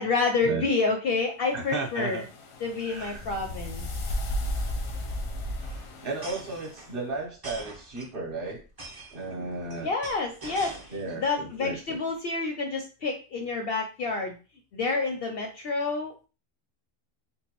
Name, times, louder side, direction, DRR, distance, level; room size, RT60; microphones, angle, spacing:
voice 1, 0.0-2.2 2.6-3.9 9.8-10.8 11.2-14.4 14.7-16.3, left 3 dB, 60° left, 3 dB, 0.6 m, -28 dB
voice 2, 1.5-2.2 2.8-3.3 6.0-8.6 9.1-9.9 10.9-12.0, right 3 dB, 45° right, 0 dB, 1.0 m, -34 dB
sound 1, 1.6-6.9, left 1 dB, 85° left, 1.1 m, -34 dB
sound 2, 2.7-2.8 3.1-3.2 3.4-3.7 4.7-11.3 11.6-12.1, right 2 dB, 25° right, 0.5 m, -45 dB
3.7 x 2.3 x 2.9 m, 0.33 s
omnidirectional pair, 1.4 m